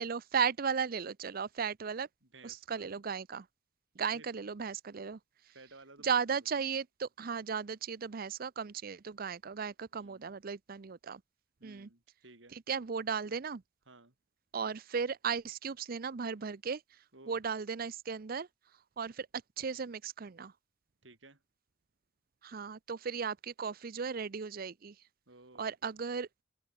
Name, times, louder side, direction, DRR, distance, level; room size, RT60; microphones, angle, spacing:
voice 1, 0.0-2.1 2.4-3.5 4.0-5.2 5.5-5.6 6.0-11.2 11.6-11.9 12.5-13.6 14.5-18.5 19.0-20.5 22.4-25.0 25.6-26.3, right 6 dB, 50° right, 0.5 m, -36 dB
voice 2, 2.3-2.9 4.1-4.3 5.5-6.2 10.0-10.3 11.6-12.6 13.9-14.1 17.1-17.4 21.0-21.4 25.3-25.7, right 2 dB, 70° right, 4.0 m, -56 dB
open air
head